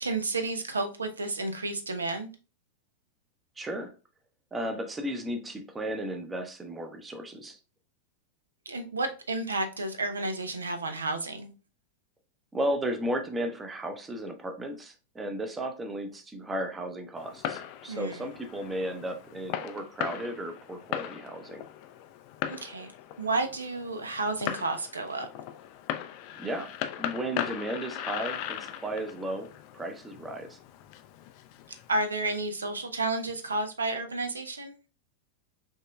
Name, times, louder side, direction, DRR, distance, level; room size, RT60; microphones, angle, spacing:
voice 1, 0.0-2.3 8.7-11.5 17.9-18.3 22.5-22.9 23.2-25.3 31.9-34.8, right 2 dB, 75° right, 0.5 m, -31 dB
voice 2, 3.6-3.9 4.5-7.6 12.5-21.6 26.4-26.7 27.0-30.6, right 1 dB, 15° right, 0.7 m, -34 dB
Fireworks, 17.2-32.0, left 10 dB, 45° left, 0.3 m, -38 dB
5.5 x 3.0 x 2.2 m
figure-of-eight pair, 90°, 0 cm